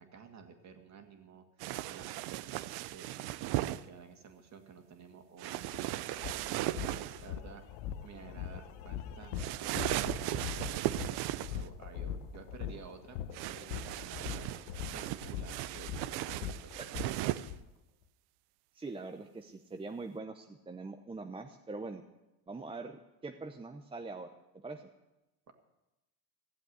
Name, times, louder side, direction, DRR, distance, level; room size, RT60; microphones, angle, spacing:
voice 1, 0.0-7.6 8.0-10.0 10.3-14.5 14.9-17.2 25.5-25.6, right 6 dB, 40° right, 6 dB, 2.3 m, -53 dB
sound 1, 1.6-3.8 5.4-7.3 9.4-11.7 13.3-17.5, right 15 dB, 60° right, 0.7 m, -37 dB
sound 2, 5.7-5.8 6.2-17.6, left 9 dB, 70° left, 1.2 m, -41 dB
voice 2, 18.7-22.0 22.5-24.3 24.6-24.9, right 3 dB, 10° right, 5 dB, 0.8 m, -43 dB
15.5 x 7.7 x 9.6 m, 0.97 s
supercardioid pair, 110°, 44 cm